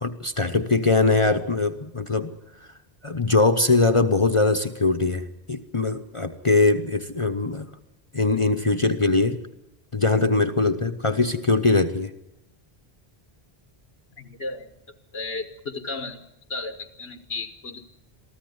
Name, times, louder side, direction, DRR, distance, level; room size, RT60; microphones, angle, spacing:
voice 1, 0.0-2.3 3.0-7.7 8.1-9.4 9.9-12.1, left 3 dB, 30° left, 9 dB, 0.9 m, -21 dB
voice 2, 14.2-14.7 15.1-16.2 16.5-17.9, left 3 dB, 90° left, 7 dB, 1.6 m, -34 dB
23.5 x 14.5 x 9.4 m, 0.87 s
omnidirectional pair, 1.0 m